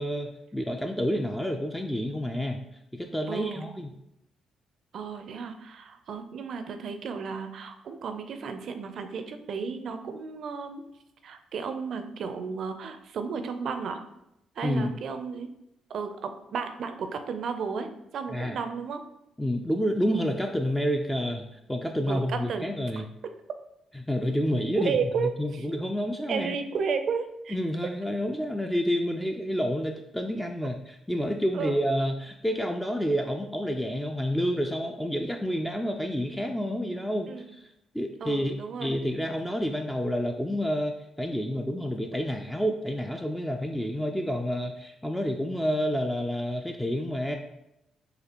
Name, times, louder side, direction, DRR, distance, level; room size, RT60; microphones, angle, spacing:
voice 1, 0.0-2.6 2.9-3.9 14.6-15.0 18.3-18.6 19.4-23.1 23.9-26.6 27.5-37.6 37.9-40.9 41.2-47.4, equal, 5° left, 3 dB, 0.3 m, -29 dB
voice 2, 3.3-3.7 4.9-10.8 11.2-14.0 14.6-15.5 15.9-17.9 18.1-19.0 22.1-22.7 24.8-25.7 26.3-27.6 31.5-31.8 37.3-37.6 38.2-38.9, right 5 dB, 65° right, 8 dB, 0.4 m, -33 dB
4.0 x 2.9 x 2.9 m, 0.85 s
cardioid pair, 90°, 0 cm